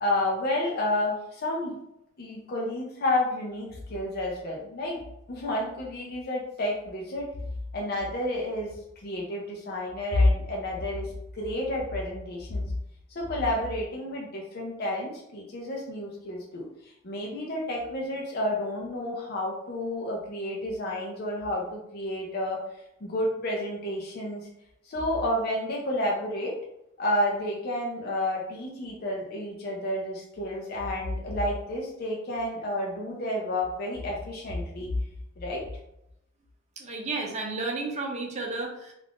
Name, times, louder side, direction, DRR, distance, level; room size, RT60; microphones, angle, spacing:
voice 1, 0.0-1.8 2.2-5.0 5.3-7.3 7.7-8.7 9.0-12.6 13.1-22.6 23.0-24.4 24.9-26.6 27.0-35.0 35.4-35.6, left 1 dB, 45° left, -2 dB, 0.5 m, -30 dB
voice 2, 36.8-38.9, right 3 dB, 35° right, 0 dB, 0.5 m, -32 dB
2.4 x 2.4 x 3.5 m, 0.82 s
head